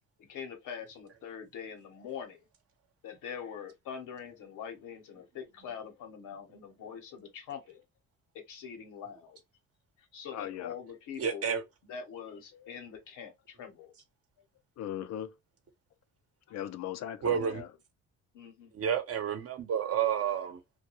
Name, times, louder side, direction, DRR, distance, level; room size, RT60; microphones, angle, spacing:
voice 1, 0.2-2.5 3.0-7.8 8.3-9.4 10.0-11.4 11.8-13.9 16.5-16.6 18.3-18.7, left 7 dB, 85° left, 0.9 m, -44 dB
voice 2, 10.3-10.7 14.8-15.3 16.5-17.7, left 11 dB, 60° left, 0.4 m, -38 dB
voice 3, 11.2-11.6 17.2-17.6 18.7-20.6, right 8 dB, 50° right, 0.8 m, -30 dB
2.3 x 2.2 x 2.8 m
cardioid pair, 90°, 30 cm